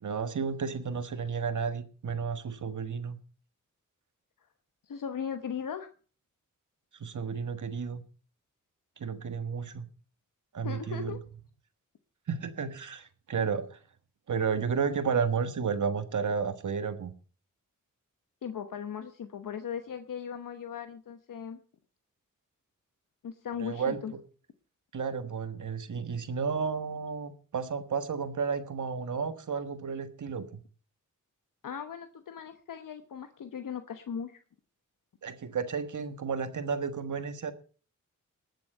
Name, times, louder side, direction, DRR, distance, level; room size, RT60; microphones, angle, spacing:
voice 1, 0.0-3.2 7.0-8.0 9.0-9.8 10.5-11.2 12.3-13.8 14.3-17.1 23.6-24.2 24.9-30.6 35.2-37.5, right 6 dB, 70° right, 10 dB, 1.5 m, -32 dB
voice 2, 4.9-5.9 10.6-11.2 18.4-21.6 23.2-24.1 31.6-34.4, left 7 dB, 85° left, 9 dB, 1.0 m, -38 dB
19.5 x 7.6 x 5.4 m, 0.39 s
wide cardioid pair, 85°, 32 cm